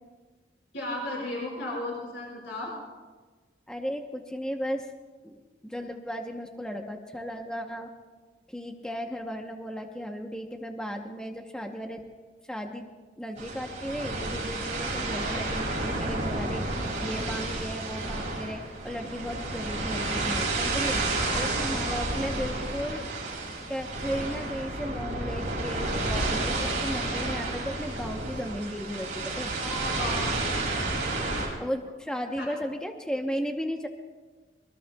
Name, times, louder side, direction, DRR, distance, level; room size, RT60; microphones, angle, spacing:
voice 1, 0.7-2.7 21.2-21.9 29.6-30.3 32.4-32.5, left 1 dB, 85° left, -4 dB, 5.2 m, -35 dB
voice 2, 3.7-4.9 5.2-7.9 8.5-12.1 12.5-12.9 13.2-21.0 21.3-23.1 23.7-29.5 31.6-33.9, equal, 5° left, 3 dB, 0.8 m, -35 dB
sound 1, 13.4-31.5, right 2 dB, 45° right, 6.0 m, -31 dB
26.0 x 21.5 x 2.3 m, 1.3 s
head